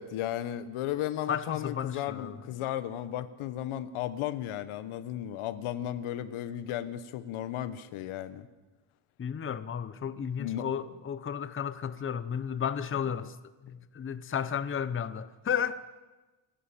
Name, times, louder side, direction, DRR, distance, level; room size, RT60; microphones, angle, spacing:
voice 1, 0.0-8.5 10.4-10.7, left 12 dB, 80° left, 1.4 m, -35 dB
voice 2, 1.3-2.4 9.2-13.4 13.6-16.0, left 8 dB, 25° left, 0.8 m, -33 dB
28.0 x 11.5 x 9.0 m
cardioid pair, 135°, 49 cm